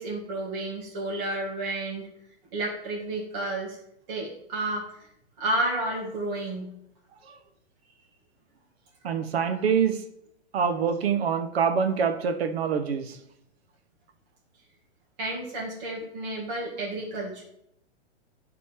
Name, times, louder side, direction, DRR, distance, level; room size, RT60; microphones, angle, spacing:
voice 1, 0.0-2.0 2.5-3.8 4.1-4.9 5.4-6.7 15.2-17.4, right 2 dB, 40° right, -5 dB, 2.2 m, -31 dB
voice 2, 9.0-10.0 10.5-13.2, right 6 dB, 60° right, 8 dB, 1.2 m, -25 dB
11.5 x 4.2 x 3.6 m, 0.78 s
hypercardioid pair, 165°, 34 cm